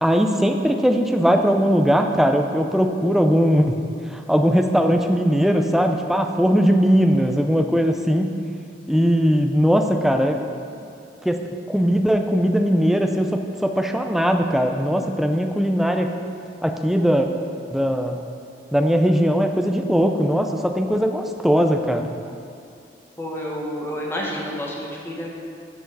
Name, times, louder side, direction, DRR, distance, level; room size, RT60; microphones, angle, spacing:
voice 1, 0.0-3.8 4.1-8.3 8.9-10.4 11.2-11.4 11.7-16.1 16.6-17.3 17.7-18.2 18.7-22.1, equal, ahead, 4 dB, 0.4 m, -19 dB
voice 2, 23.2-25.3, equal, 15° left, -3 dB, 1.3 m, -29 dB
13.5 x 4.8 x 4.0 m, 2.5 s
head